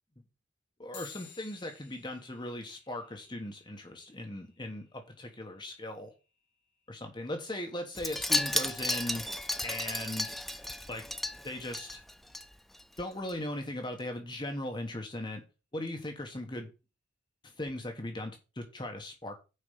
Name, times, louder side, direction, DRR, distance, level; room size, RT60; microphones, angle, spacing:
voice 1, 0.8-6.1 6.9-9.3 9.6-10.3 10.9-11.1 11.4-12.0 13.0-15.4 15.7-16.7 17.4-19.3, left 1 dB, 25° left, 1.2 m, -38 dB
sound 1, 0.9-10.8, left 8 dB, 65° left, 2.4 m, -58 dB
Wind chime, 8.0-12.4 12.7-13.0 13.3-13.4, left 1 dB, ahead, 0.3 m, -33 dB
6.6 x 5.2 x 6.8 m
head